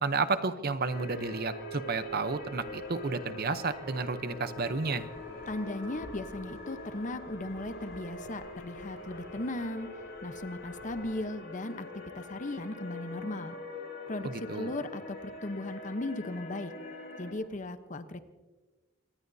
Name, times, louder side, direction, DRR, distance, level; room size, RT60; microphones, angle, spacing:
voice 1, 0.0-5.1 14.2-14.7, right 4 dB, 45° right, 11 dB, 0.8 m, -31 dB
sound 1, 0.8-11.3, left 1 dB, 75° left, 5.6 m, -52 dB
sound 2, 0.9-17.3, left 2 dB, 55° left, 4.6 m, -44 dB
voice 2, 5.5-9.9 10.2-13.6 14.1-16.7 17.2-18.2, left 2 dB, 35° left, 10 dB, 0.9 m, -37 dB
26.0 x 19.0 x 2.7 m, 1.2 s
head